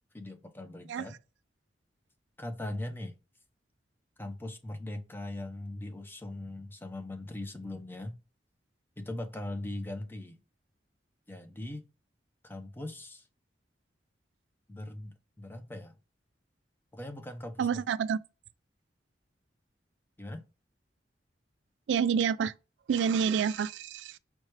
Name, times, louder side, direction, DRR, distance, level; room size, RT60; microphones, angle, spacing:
voice 1, 0.1-1.2 2.4-3.2 4.2-8.1 9.0-10.4 11.3-11.9 12.4-13.2 14.7-16.0 16.9-17.8 20.2-20.4, left 1 dB, 10° left, 0.5 m, -40 dB
voice 2, 17.6-18.2 21.9-22.5 22.9-24.2, right 7 dB, 85° right, 0.3 m, -28 dB
4.6 x 2.2 x 3.1 m
head